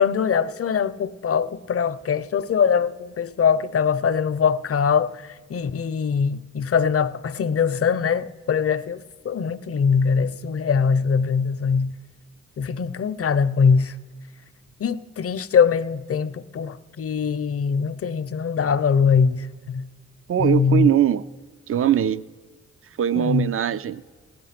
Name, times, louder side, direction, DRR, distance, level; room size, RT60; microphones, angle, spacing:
voice 1, 0.0-11.9 12.6-14.0 14.8-19.9 20.4-20.9 23.2-23.5, left 6 dB, 50° left, 0.6 m, -22 dB
voice 2, 20.3-21.2 21.7-22.2 23.0-24.0, right 10 dB, 50° right, 0.5 m, -21 dB
15.5 x 10.5 x 5.8 m
cardioid pair, 55°, 30 cm